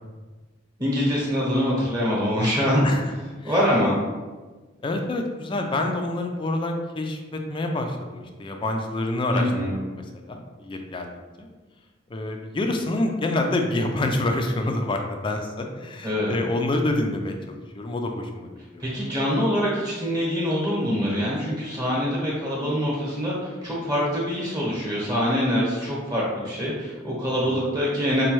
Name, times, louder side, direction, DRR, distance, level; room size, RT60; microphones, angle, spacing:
voice 1, 0.8-2.8 3.4-4.0 9.3-9.7 16.0-16.3 18.8-28.2, equal, 20° right, -7 dB, 0.9 m, -24 dB
voice 2, 4.8-11.1 11.4-11.5 12.1-18.8 27.4-27.6, left 2 dB, 25° left, 4 dB, 0.3 m, -27 dB
4.2 x 2.2 x 3.1 m, 1.3 s
head